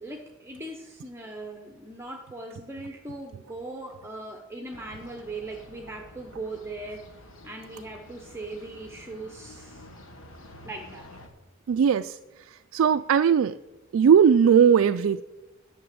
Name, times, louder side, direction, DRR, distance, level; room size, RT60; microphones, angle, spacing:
voice 1, 0.0-7.0 7.4-9.9 10.6-11.1, right 2 dB, 10° right, 1 dB, 0.8 m, -39 dB
sound 1, 4.7-11.3, left 1 dB, 70° left, 1.5 m, -49 dB
voice 2, 11.7-13.6 13.9-15.2, right 7 dB, 75° right, 8 dB, 0.3 m, -19 dB
10.0 x 5.9 x 7.8 m, 1.0 s
head